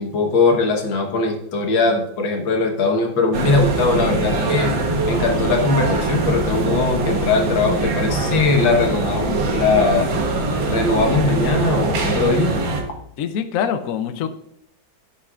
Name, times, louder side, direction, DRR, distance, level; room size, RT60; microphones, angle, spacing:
voice 1, 0.0-4.7 5.1-10.1 10.7-12.5, left 3 dB, 85° left, 2 dB, 2.1 m, -20 dB
sound 1, 3.3-12.8, right 2 dB, 75° right, 2.0 m, -22 dB
voice 2, 13.2-14.3, left 8 dB, 65° left, 9 dB, 0.9 m, -24 dB
17.0 x 6.5 x 2.5 m, 0.72 s
omnidirectional pair, 2.1 m